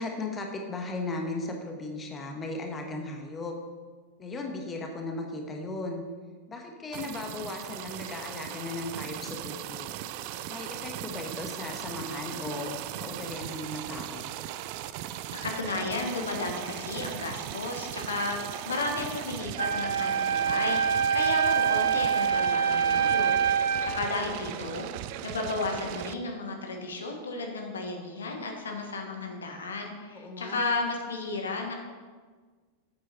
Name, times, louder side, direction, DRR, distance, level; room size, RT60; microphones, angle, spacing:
voice 1, 0.0-3.5 4.2-6.0 6.5-10.0 10.5-14.3 30.1-30.7, left 2 dB, 20° left, 2 dB, 1.3 m, -36 dB
sound 1, 6.9-26.1, right 12 dB, 45° right, 0.4 m, -38 dB
voice 2, 15.4-31.7, left 3 dB, 70° left, 3 dB, 1.3 m, -33 dB
Wind instrument woodwind instrument, 19.6-24.0, right 7 dB, 60° right, 1.0 m, -25 dB
9.6 x 7.7 x 4.3 m, 1.5 s
figure-of-eight pair, 90°, 0 cm